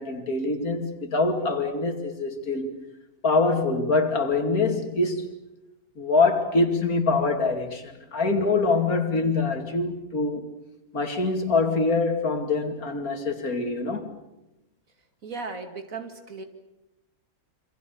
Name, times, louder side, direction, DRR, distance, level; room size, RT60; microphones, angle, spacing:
voice 1, 0.0-2.7 3.2-5.4 6.0-10.5 10.9-14.1, left 3 dB, 75° left, 3.0 m, -24 dB
voice 2, 15.2-16.4, right 4 dB, 65° right, 2.8 m, -36 dB
27.0 x 26.0 x 7.0 m
omnidirectional pair, 1.5 m